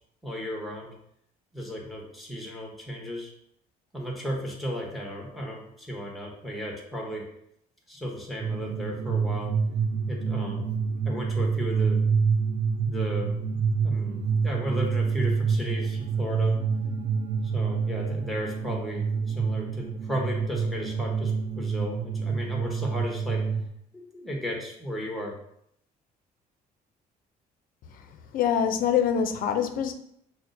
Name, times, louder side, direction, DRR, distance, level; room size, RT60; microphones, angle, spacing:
voice 1, 0.2-0.9 1.5-3.3 3.9-7.2 7.9-9.5 10.1-10.7 11.0-12.0 12.8-16.5 17.4-23.4 24.1-25.3, equal, ahead, -1 dB, 1.0 m, -35 dB
sound 1, 8.4-23.7, right 5 dB, 45° right, 0.5 m, -27 dB
voice 2, 28.3-29.9, left 8 dB, 55° left, 7 dB, 0.5 m, -24 dB
5.8 x 2.1 x 2.6 m, 0.72 s
cardioid pair, 110°, 17 cm